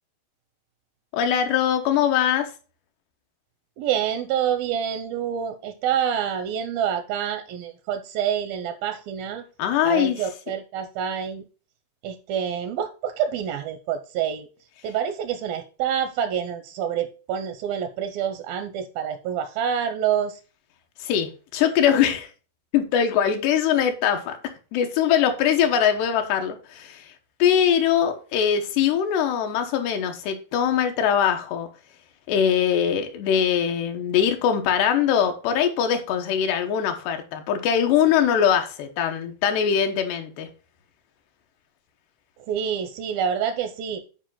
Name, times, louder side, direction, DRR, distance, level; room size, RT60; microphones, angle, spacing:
voice 1, 1.1-2.5 9.6-10.2 21.0-22.3 22.7-24.4 24.7-27.1 27.4-31.7 32.3-40.5, left 8 dB, 85° left, 3.3 m, -22 dB
voice 2, 3.8-9.4 9.8-11.4 12.0-14.5 14.8-20.4 42.5-44.0, right 8 dB, 80° right, 2.2 m, -27 dB
10.0 x 5.0 x 3.8 m
omnidirectional pair, 4.7 m